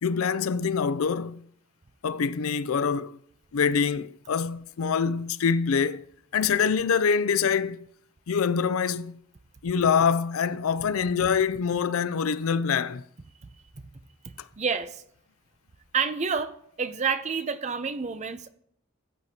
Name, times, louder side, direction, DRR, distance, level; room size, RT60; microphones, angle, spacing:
voice 1, 0.0-1.4 2.0-3.1 3.5-6.0 6.3-7.8 8.3-9.2 9.6-13.0, left 6 dB, 80° left, 0.4 m, -25 dB
voice 2, 14.6-15.0 15.9-18.5, right 5 dB, 35° right, 0.6 m, -29 dB
13.5 x 7.9 x 2.8 m
head